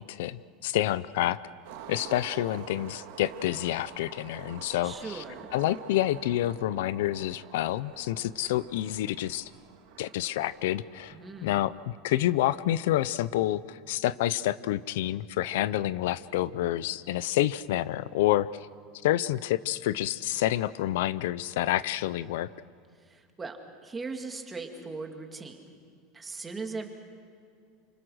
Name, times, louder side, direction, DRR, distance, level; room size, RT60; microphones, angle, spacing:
voice 1, 0.0-1.4 1.9-5.2 5.5-9.5 10.0-11.1 11.4-18.5 19.0-22.5, left 14 dB, 75° left, 17 dB, 0.6 m, -28 dB
Skateboard, 1.6-11.8, right 9 dB, 65° right, 2.0 m, -47 dB
voice 2, 4.8-5.5 11.1-11.6 23.0-25.7 26.1-26.9, right 4 dB, 10° right, 3 dB, 2.1 m, -39 dB
28.5 x 26.0 x 6.4 m, 2.3 s
supercardioid pair, 170°, 0 cm